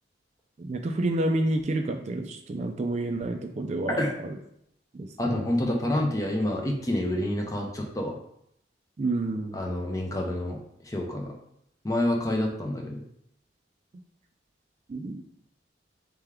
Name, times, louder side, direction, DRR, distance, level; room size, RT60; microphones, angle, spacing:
voice 1, 0.6-4.0 5.0-5.4 9.0-9.6 14.9-15.2, right 2 dB, 35° right, 4 dB, 0.3 m, -29 dB
voice 2, 5.2-8.2 9.5-11.3 11.8-13.0, left 1 dB, 20° left, 1 dB, 0.5 m, -28 dB
3.5 x 3.3 x 3.4 m, 0.74 s
head